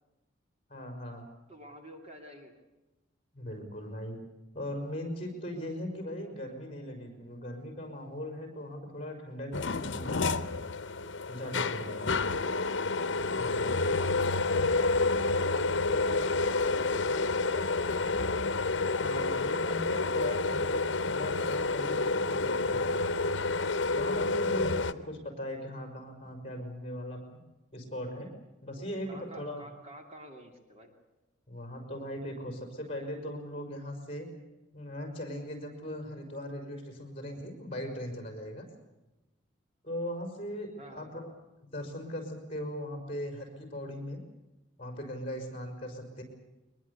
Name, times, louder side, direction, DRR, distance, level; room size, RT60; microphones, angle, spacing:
voice 1, 0.7-1.3 3.3-4.2 4.5-10.2 11.3-12.2 13.3-13.8 19.0-22.9 23.9-27.2 27.7-28.3 28.6-29.6 31.5-34.3 34.7-38.6 39.8-41.3 41.6-44.2 44.8-46.2, left 1 dB, 30° left, 5 dB, 5.4 m, -39 dB
voice 2, 1.5-2.6 11.8-12.1 13.8-18.2 24.4-24.5 28.8-30.9 40.8-41.1, right 1 dB, 35° right, 4 dB, 2.7 m, -51 dB
sound 1, 9.5-24.9, left 3 dB, 75° left, 0.9 m, -29 dB
23.0 x 21.0 x 8.3 m, 1.0 s
head